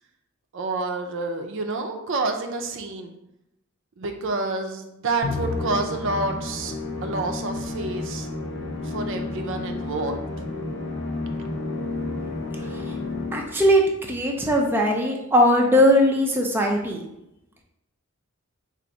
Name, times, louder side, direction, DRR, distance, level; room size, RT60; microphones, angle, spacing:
voice 1, 0.5-3.1 4.0-8.3 8.8-10.2, right 3 dB, 60° right, 4 dB, 0.5 m, -28 dB
Musical instrument, 5.2-13.7, left 3 dB, 55° left, 0.6 m, -31 dB
voice 2, 13.3-17.0, equal, 10° right, 0 dB, 0.4 m, -20 dB
3.9 x 2.5 x 4.6 m, 0.85 s
head